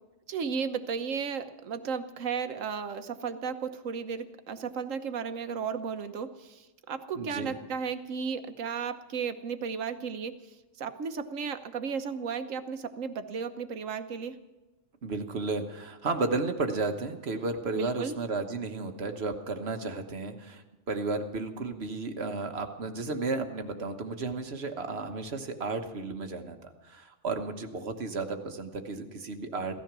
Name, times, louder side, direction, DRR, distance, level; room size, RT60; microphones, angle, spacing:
voice 1, 0.3-10.4 10.8-14.4 17.8-18.2, right 6 dB, 85° right, 9 dB, 1.4 m, -34 dB
voice 2, 7.2-7.5 15.0-29.8, right 3 dB, 55° right, 6 dB, 1.4 m, -33 dB
16.5 x 13.5 x 6.1 m, 1.1 s
omnidirectional pair, 1.3 m